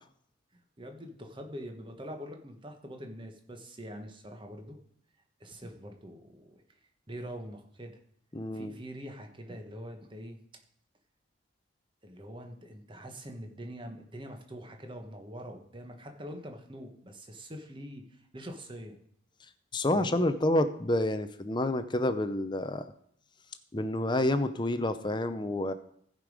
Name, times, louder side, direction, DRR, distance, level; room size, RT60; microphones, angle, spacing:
voice 1, 0.5-4.8 5.4-6.6 7.1-8.0 8.5-10.4 12.0-19.0 19.9-20.2, equal, 25° right, 4 dB, 1.2 m, -44 dB
voice 2, 8.3-8.8 19.7-22.8 23.7-25.7, left 1 dB, 20° left, 11 dB, 0.6 m, -28 dB
15.0 x 5.3 x 4.8 m, 0.67 s
head